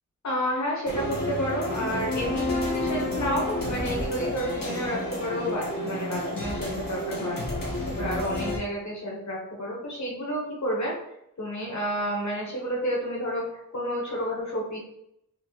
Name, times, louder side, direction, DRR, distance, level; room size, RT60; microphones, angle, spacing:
voice 1, 0.2-7.4 7.9-10.9 11.4-13.4 13.7-14.8, equal, 60° left, -3 dB, 1.1 m, -30 dB
sound 1, 0.8-8.6, left 1 dB, 90° left, 1.1 m, -30 dB
4.3 x 2.0 x 2.9 m, 0.79 s
wide cardioid pair, 50°, 33 cm